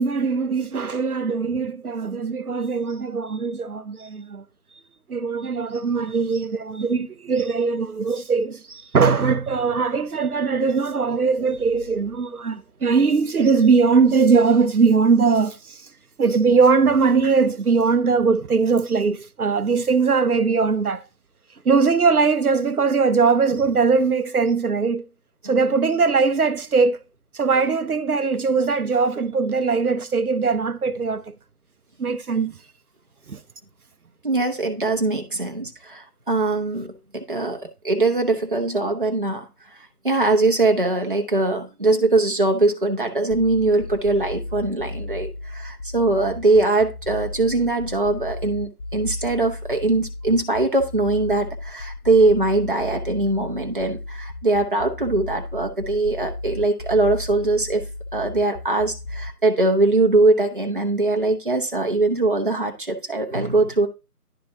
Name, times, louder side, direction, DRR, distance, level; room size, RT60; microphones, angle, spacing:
voice 1, 0.0-4.4 5.1-15.9 16.2-21.0 21.6-25.1 25.4-27.0 27.3-31.3 32.0-32.6 33.3-33.4, right 5 dB, 75° right, 0.7 m, -20 dB
voice 2, 34.2-57.8 58.1-63.9, right 2 dB, 35° right, 0.7 m, -21 dB
sound 1, 43.3-59.3, left 2 dB, 60° left, 0.8 m, -34 dB
11.0 x 4.1 x 2.7 m
figure-of-eight pair, 160°, 45 cm